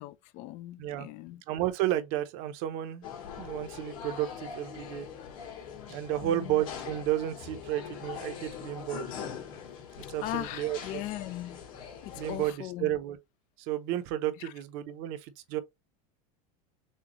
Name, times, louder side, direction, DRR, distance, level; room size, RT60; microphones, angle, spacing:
voice 1, 0.0-1.4 6.2-6.6 10.0-11.6 12.0-12.9 14.4-14.5, left 15 dB, 40° left, 0.5 m, -39 dB
voice 2, 1.5-3.1 3.4-5.1 5.9-9.1 10.0-11.0 12.1-13.2 13.6-15.6, right 13 dB, 55° right, 0.8 m, -32 dB
sound 1, 3.0-12.5, left 7 dB, 65° left, 2.5 m, -42 dB
6.3 x 2.3 x 3.0 m
supercardioid pair, 155°, 18 cm